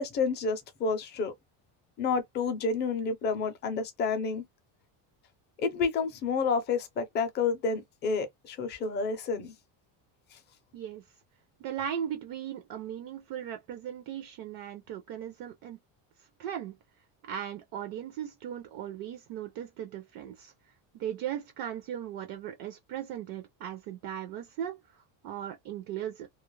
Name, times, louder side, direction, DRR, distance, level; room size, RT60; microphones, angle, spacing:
voice 1, 0.0-1.3 2.0-4.4 5.6-9.5, left 4 dB, 25° left, 0.4 m, -29 dB
voice 2, 10.7-11.0 11.6-15.8 16.4-16.8 17.2-20.5 20.9-26.3, right 10 dB, 50° right, 0.5 m, -38 dB
2.3 x 2.0 x 3.0 m
cardioid pair, 175°, 47 cm